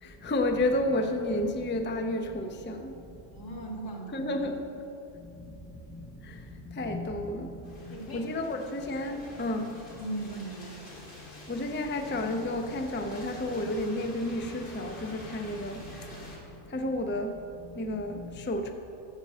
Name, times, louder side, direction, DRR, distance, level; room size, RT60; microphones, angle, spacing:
voice 1, 0.0-3.0 3.4-3.6 4.1-4.6 5.1-10.0 11.5-16.1 16.4-18.7, left 1 dB, 15° left, 5 dB, 0.4 m, -32 dB
voice 2, 3.3-4.5 7.9-8.3 10.0-10.7, right 2 dB, 90° left, -2 dB, 2.1 m, -38 dB
sound 1, 7.6-16.4, left 1 dB, 45° left, 2.0 m, -47 dB
9.6 x 7.0 x 7.2 m, 2.8 s
omnidirectional pair, 1.3 m